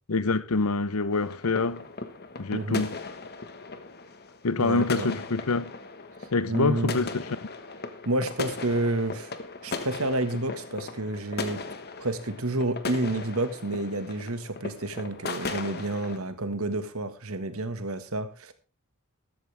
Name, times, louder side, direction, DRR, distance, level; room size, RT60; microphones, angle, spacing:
voice 1, 0.1-1.8 2.4-3.0 4.4-5.7 6.3-7.2, left 3 dB, 75° left, 0.8 m, -26 dB
sound 1, 1.1-16.2, left 3 dB, 45° left, 1.4 m, -38 dB
voice 2, 2.5-2.8 4.6-5.1 6.5-7.0 8.0-9.3 9.6-11.6 12.0-18.5, right 2 dB, 70° right, 1.7 m, -29 dB
14.0 x 12.5 x 3.4 m
head